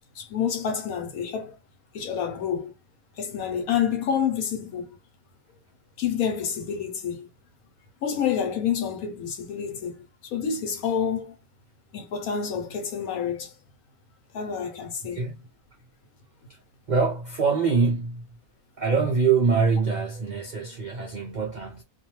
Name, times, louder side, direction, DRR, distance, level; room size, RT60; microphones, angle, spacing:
voice 1, 0.2-1.5 1.9-2.7 3.2-5.0 6.0-7.3 8.0-10.0 10.3-11.3 11.9-13.5 14.3-15.2, left 7 dB, 70° left, 1.2 m, -28 dB
voice 2, 16.9-18.2 18.8-21.8, right 5 dB, 75° right, 0.4 m, -24 dB
2.7 x 2.2 x 3.0 m
omnidirectional pair, 1.6 m